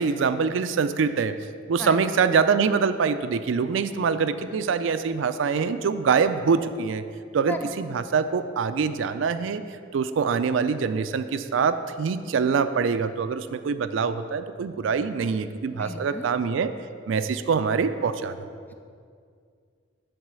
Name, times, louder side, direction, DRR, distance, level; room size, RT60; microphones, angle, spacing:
voice 1, 0.0-1.3 1.7-7.0 7.3-9.6 9.9-16.7 17.1-18.3, right 5 dB, 80° right, 11 dB, 0.4 m, -24 dB
voice 2, 15.7-16.3, left 2 dB, 10° left, 6 dB, 0.3 m, -35 dB
7.8 x 4.0 x 6.8 m, 2.2 s
head